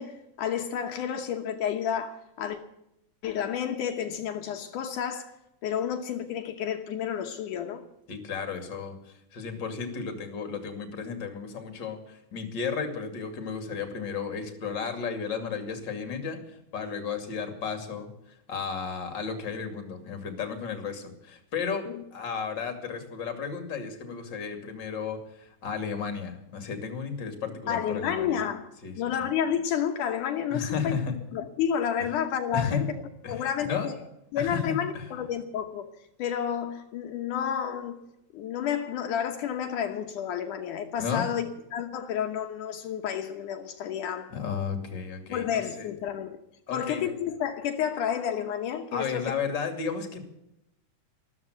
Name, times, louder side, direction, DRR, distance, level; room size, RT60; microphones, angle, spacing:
voice 1, 0.0-2.6 3.2-5.3 5.6-7.8 21.9-22.0 27.7-28.7 29.0-30.9 31.3-32.9 33.3-33.9 34.3-35.9 36.2-38.0 38.3-44.3 45.3-46.3 46.7-49.3, left 8 dB, 75° left, 2.6 m, -30 dB
voice 2, 8.1-28.4 28.8-28.9 30.5-31.1 32.5-32.8 33.2-33.9 34.4-35.1 41.0-41.3 44.3-45.9 46.7-47.1 48.9-50.2, left 6 dB, 35° left, 2.9 m, -33 dB
13.5 x 13.5 x 8.1 m
omnidirectional pair, 3.7 m